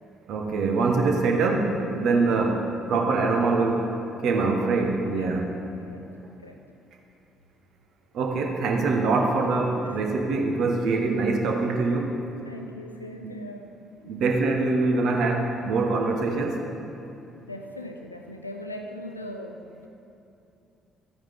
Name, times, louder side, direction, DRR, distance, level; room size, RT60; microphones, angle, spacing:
voice 1, 0.3-3.8 4.2-5.5 8.1-12.1 13.2-13.4 14.0-16.6, right 3 dB, 55° right, 2 dB, 1.1 m, -24 dB
voice 2, 9.8-10.2 12.4-13.8 17.4-19.9, left 1 dB, 90° left, 4 dB, 0.4 m, -40 dB
14.0 x 9.5 x 3.6 m, 2.8 s
figure-of-eight pair, 45°, 0 cm